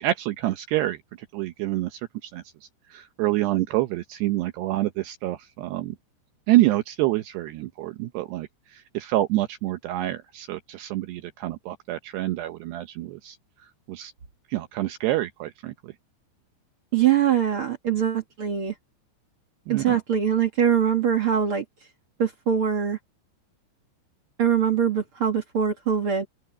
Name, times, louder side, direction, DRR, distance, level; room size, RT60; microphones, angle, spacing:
voice 1, 0.0-6.0 6.5-13.4 13.9-14.1 14.5-15.9 19.7-20.0, right 16 dB, 75° right, 2.6 m, -27 dB
voice 2, 16.9-18.7 19.7-21.6 22.2-23.0 24.4-26.2, right 8 dB, 55° right, 1.5 m, -23 dB
open air
omnidirectional pair, 5.5 m